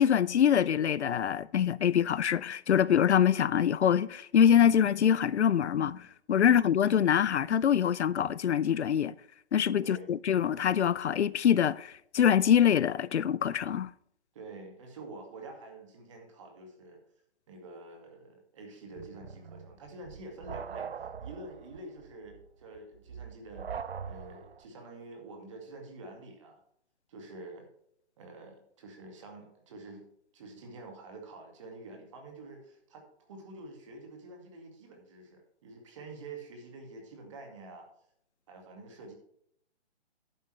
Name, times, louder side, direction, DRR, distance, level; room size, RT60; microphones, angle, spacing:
voice 1, 0.0-9.1 9.5-13.9, left 9 dB, 75° left, 0.6 m, -25 dB
voice 2, 6.4-6.7 9.8-10.1 14.3-17.0 17.5-26.6 27.1-27.7 28.2-30.1 30.3-37.9 38.5-39.2, right 2 dB, 25° right, 2.2 m, -47 dB
sound 1, 18.9-24.6, right 7 dB, 60° right, 0.8 m, -42 dB
11.0 x 8.5 x 3.3 m
hypercardioid pair, 165°, 34 cm